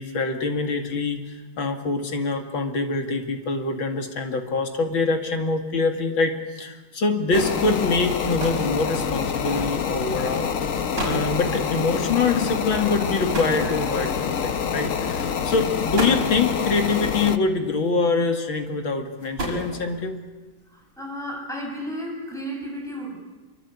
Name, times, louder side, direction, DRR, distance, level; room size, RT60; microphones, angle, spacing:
voice 1, 0.0-10.5 11.0-20.2, left 4 dB, 75° left, 4 dB, 3.0 m, -24 dB
sound 1, 7.3-17.4, left 7 dB, 50° left, 1.2 m, -26 dB
sound 2, 8.2-8.8 9.8-10.0 10.6-10.7 10.9-11.3 13.3-14.2 15.1-15.3 15.8-16.4 17.7-18.2 19.0-20.1, right 1 dB, 60° right, 6.5 m, -31 dB
voice 2, 21.0-23.2, equal, ahead, -1 dB, 7.3 m, -32 dB
25.5 x 23.5 x 8.4 m, 1.2 s
omnidirectional pair, 2.2 m